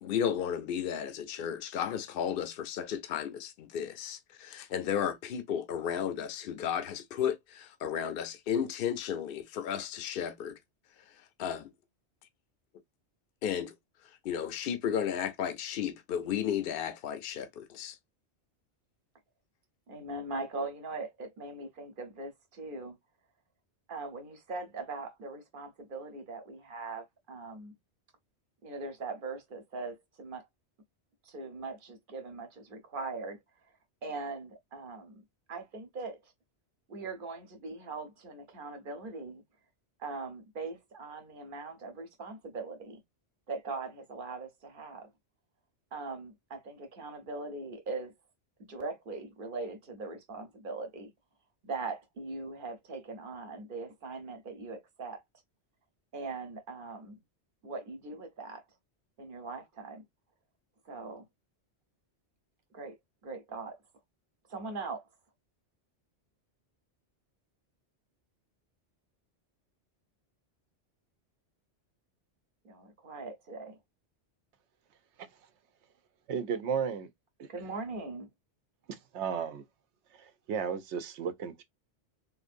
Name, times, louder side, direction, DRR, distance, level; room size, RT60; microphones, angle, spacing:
voice 1, 0.0-10.5 11.4-11.7 13.4-13.7 14.2-18.0, left 8 dB, 60° left, 0.7 m, -33 dB
voice 2, 19.9-23.0 23.9-27.7 28.6-30.5 31.2-33.4 34.0-35.2 35.5-36.2 36.9-39.4 40.0-43.0 43.5-45.1 45.9-48.1 48.7-51.1 51.6-55.2 56.1-57.2 57.6-58.6 59.2-60.0 60.8-61.2 62.7-62.9 63.2-63.8 64.5-65.1 72.6-73.7 77.5-78.3, right 3 dB, 50° right, 1.0 m, -40 dB
voice 3, 76.3-77.1 77.4-77.5 78.9-79.6 80.1-81.6, right 7 dB, 75° right, 0.9 m, -34 dB
3.7 x 2.6 x 2.5 m
omnidirectional pair, 1.2 m